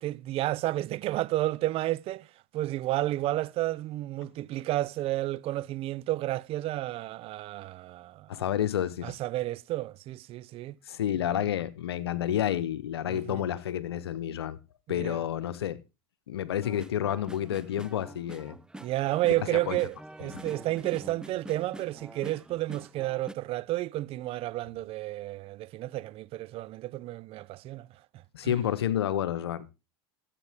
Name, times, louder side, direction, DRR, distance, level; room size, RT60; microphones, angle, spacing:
voice 1, 0.0-2.3 2.5-8.3 9.0-10.8 11.2-11.5 13.1-13.4 14.9-15.2 18.8-27.9 28.4-28.6, right 16 dB, 50° right, 0.6 m, -31 dB
voice 2, 8.3-9.1 10.9-14.6 14.9-15.8 16.3-18.6 19.7-19.8 20.3-20.4 28.3-29.7, left 11 dB, 90° left, 0.9 m, -30 dB
sound 1, 16.6-23.3, right 1 dB, 5° right, 0.6 m, -46 dB
13.0 x 8.4 x 3.5 m
hypercardioid pair, 85°, 13 cm